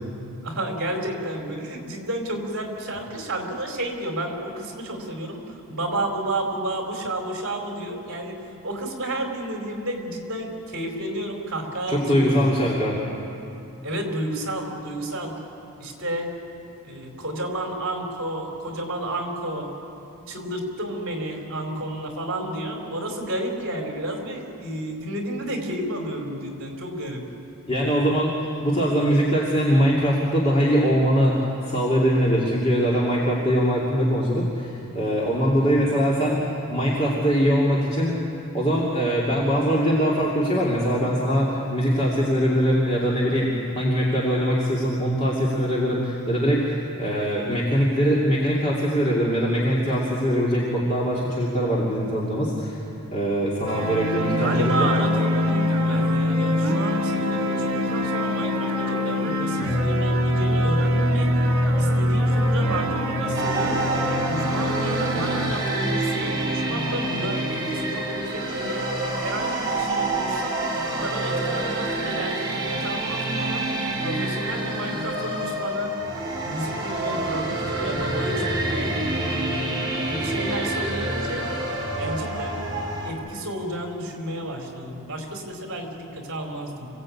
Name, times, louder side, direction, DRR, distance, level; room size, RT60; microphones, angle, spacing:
voice 1, 0.4-5.4 5.7-8.4 8.6-12.4 13.8-15.3 15.8-16.3 16.8-19.7 20.3-27.2 54.4-61.3 61.8-68.9 69.2-70.6 70.9-73.6 74.0-76.0 76.4-79.0 79.5-81.5 82.0-82.6 83.0-86.9, right 1 dB, 55° right, 2 dB, 4.3 m, -31 dB
voice 2, 11.9-13.0 27.7-28.3 28.6-36.4 36.7-38.2 38.5-52.8 53.1-54.9, equal, 30° left, -6 dB, 2.6 m, -22 dB
sound 1, 53.7-65.5, left 1 dB, 75° right, 2.7 m, -23 dB
sound 2, 63.3-83.1, right 2 dB, 20° right, 4.2 m, -27 dB
26.5 x 17.5 x 8.7 m, 2.8 s
head